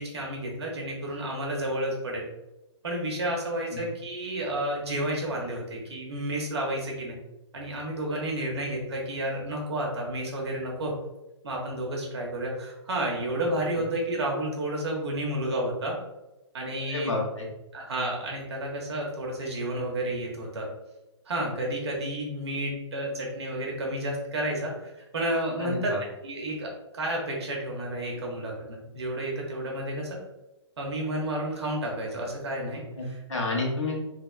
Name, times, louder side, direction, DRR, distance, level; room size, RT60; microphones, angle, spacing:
voice 1, 0.0-2.2 2.8-7.2 7.5-10.9 11.4-15.9 16.5-17.1 17.7-20.7 21.3-25.9 26.2-30.2 30.8-33.2 33.5-33.6, right 1 dB, 60° right, -1 dB, 1.1 m, -31 dB
voice 2, 16.9-17.5 25.6-26.0 33.0-34.0, left 2 dB, 85° left, -3 dB, 1.3 m, -30 dB
3.4 x 3.1 x 2.2 m, 0.96 s
figure-of-eight pair, 125°, 15 cm